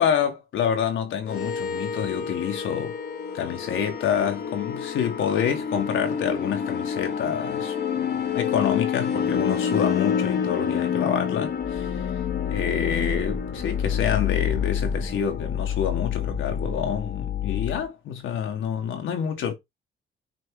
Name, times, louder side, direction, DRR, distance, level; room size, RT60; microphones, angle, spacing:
voice 1, 0.0-3.0 3.3-11.9 12.5-19.5, left 8 dB, 75° left, 1.9 m, -27 dB
sound 1, 1.3-17.8, left 7 dB, 55° left, 1.3 m, -28 dB
6.2 x 3.1 x 4.8 m
cardioid pair, 90°, 20 cm